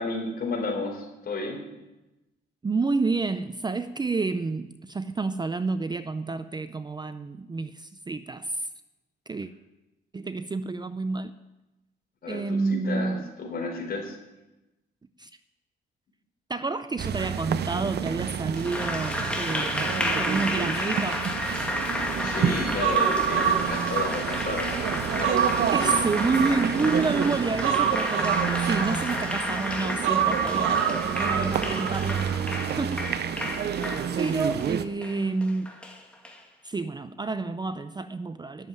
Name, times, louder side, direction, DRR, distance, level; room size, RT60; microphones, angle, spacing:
voice 1, 0.0-1.6 12.2-14.2 22.2-24.7 25.1-25.4 25.9-26.0, left 3 dB, 50° left, 4.0 m, -32 dB
voice 2, 2.6-8.7 9.3-9.5 10.1-11.3 12.3-13.2 15.2-15.3 16.5-21.3 25.7-32.3 32.8-33.1 34.2-35.7 36.6-38.7, right 3 dB, 20° right, 0.5 m, -29 dB
sound 1, 17.0-34.9, right 8 dB, 55° right, 0.7 m, -30 dB
Applause, 18.5-36.4, left 1 dB, 5° left, 2.0 m, -32 dB
Human voice, 22.8-24.6 25.0-27.0 27.6-29.4 30.0-32.0 32.3-32.4, right 8 dB, 90° right, 1.3 m, -26 dB
10.5 x 7.4 x 9.4 m
cardioid pair, 90°, 20 cm